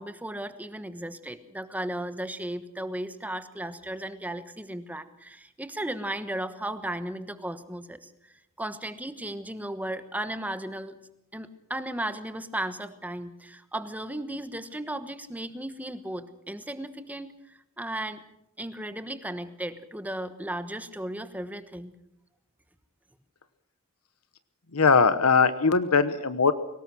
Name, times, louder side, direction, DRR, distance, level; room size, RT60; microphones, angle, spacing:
voice 1, 0.0-8.1 8.6-10.9 11.3-18.2 18.6-21.9, right 1 dB, 5° right, 11 dB, 1.2 m, -35 dB
voice 2, 24.7-26.5, left 5 dB, 85° left, 12 dB, 1.0 m, -20 dB
23.0 x 19.0 x 6.2 m, 0.85 s
head